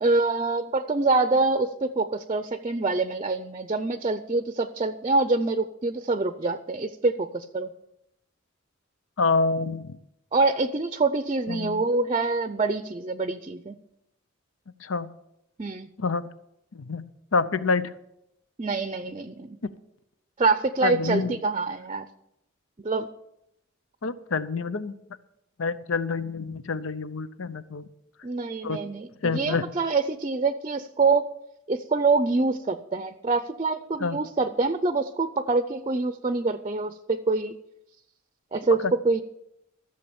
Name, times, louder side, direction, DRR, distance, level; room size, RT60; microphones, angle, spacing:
voice 1, 0.0-7.7 10.3-13.8 15.6-15.9 18.6-19.6 20.4-22.1 22.8-23.1 28.2-31.3 31.7-37.6 38.5-39.2, right 3 dB, 30° right, 11 dB, 0.5 m, -25 dB
voice 2, 9.2-10.0 11.5-11.8 14.8-15.1 16.0-16.3 16.7-17.1 17.3-17.9 19.6-19.7 20.8-21.3 24.0-25.0 25.6-27.9 28.6-28.8 29.2-29.7 34.0-34.2 38.8-38.9, left 4 dB, 90° left, 14 dB, 0.7 m, -27 dB
14.5 x 7.0 x 7.0 m, 0.83 s
head